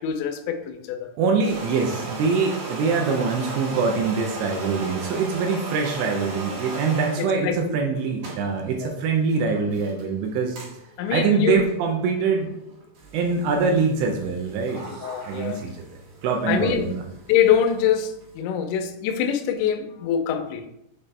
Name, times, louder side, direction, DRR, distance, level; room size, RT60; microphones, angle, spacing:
voice 1, 0.0-1.1 7.2-7.6 8.8-8.9 11.0-11.6 15.0-15.6 16.5-16.9 17.3-20.6, left 8 dB, 85° left, 6 dB, 2.6 m, -24 dB
voice 2, 1.2-10.6 11.1-12.5 13.1-14.8 15.2-15.8 16.2-17.0, right 5 dB, 85° right, 1 dB, 2.5 m, -24 dB
sound 1, 1.3-7.3 7.9-18.4, right 2 dB, 65° right, 2.5 m, -38 dB
7.2 x 4.1 x 3.3 m, 0.81 s
omnidirectional pair, 5.9 m